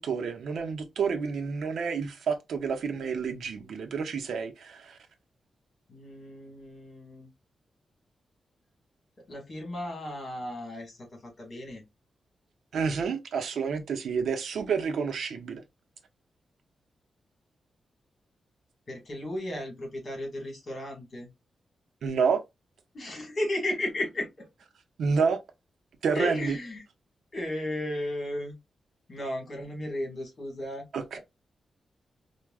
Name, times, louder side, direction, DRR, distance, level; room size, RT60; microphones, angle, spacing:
voice 1, 0.0-5.0 12.7-15.6 22.0-22.4 25.0-25.4 26.0-26.6 30.9-31.2, right 5 dB, 80° right, 0.6 m, -29 dB
voice 2, 5.9-7.3 9.3-11.9 18.9-21.3 22.9-24.5 26.1-26.8 27.3-28.5 29.1-30.8 31.1-31.2, left 1 dB, 40° left, 1.8 m, -34 dB
4.6 x 2.2 x 2.3 m
wide cardioid pair, 150°, 0 cm